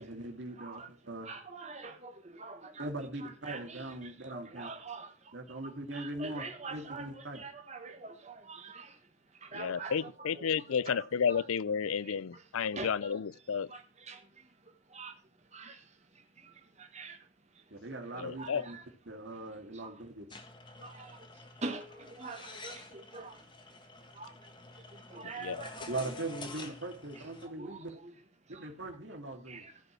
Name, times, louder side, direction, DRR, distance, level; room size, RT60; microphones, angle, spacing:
voice 1, 0.0-1.3 2.8-4.7 5.3-6.5 6.7-7.4 17.7-18.8 19.1-20.3 25.9-27.9 28.5-29.7, right 2 dB, 60° right, 2.3 m, -40 dB
voice 2, 0.6-0.9 1.2-2.9 3.2-9.0 9.4-11.4 12.0-13.2 13.7-15.2 15.5-17.3 17.5-17.6 18.4-18.9 19.7-20.0 20.8-23.5 24.1-26.6 27.4-28.1 28.5-28.7 29.5-29.7, right 3 dB, 35° right, 1.4 m, -46 dB
voice 3, 9.5-13.7 18.2-18.6 25.4-25.6, left 6 dB, 90° left, 0.5 m, -32 dB
sound 1, 20.3-27.5, left 3 dB, 25° left, 1.3 m, -49 dB
15.0 x 5.4 x 6.1 m
head